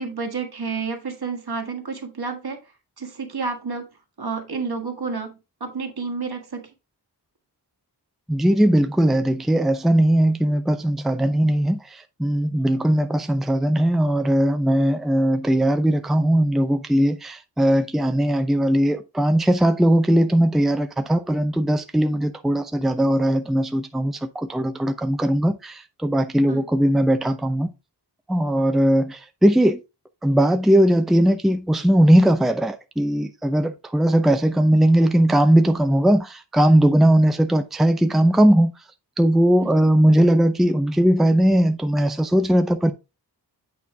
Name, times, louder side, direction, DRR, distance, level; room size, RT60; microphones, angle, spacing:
voice 1, 0.0-2.6 3.0-3.9 4.2-6.7 26.5-26.6 39.6-39.7, right 4 dB, 65° right, 1.6 m, -30 dB
voice 2, 8.3-27.7 28.3-29.8 30.2-38.7 39.2-42.9, right 1 dB, ahead, 0.6 m, -19 dB
8.6 x 4.3 x 3.4 m
wide cardioid pair, 85°, 41 cm